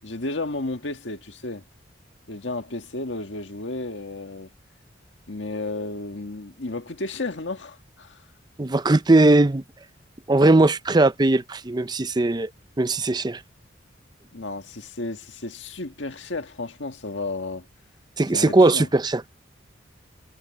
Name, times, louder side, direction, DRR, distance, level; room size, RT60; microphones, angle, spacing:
voice 1, 0.0-1.6 2.3-4.5 5.3-8.2 14.3-17.7 18.3-18.9, left 2 dB, 75° left, 1.8 m, -33 dB
voice 2, 8.6-9.6 10.3-12.5 12.8-13.4 18.2-19.3, right 2 dB, 20° right, 0.6 m, -19 dB
head